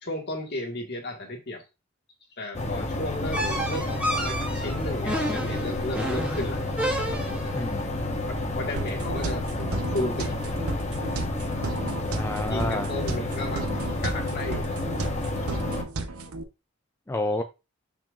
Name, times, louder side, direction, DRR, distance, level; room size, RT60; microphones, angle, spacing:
voice 1, 0.0-1.6 2.4-6.6 8.3-10.4 12.5-14.8, left 1 dB, 50° left, 1.8 m, -34 dB
sound 1, 2.5-15.8, left 2 dB, 30° left, 1.1 m, -30 dB
sound 2, 3.3-7.6, equal, 5° right, 1.6 m, -30 dB
voice 2, 7.5-7.9 12.1-12.9 17.1-17.4, left 2 dB, 10° left, 0.3 m, -30 dB
sound 3, 8.8-16.4, right 2 dB, 85° right, 0.8 m, -34 dB
6.8 x 5.8 x 2.5 m
head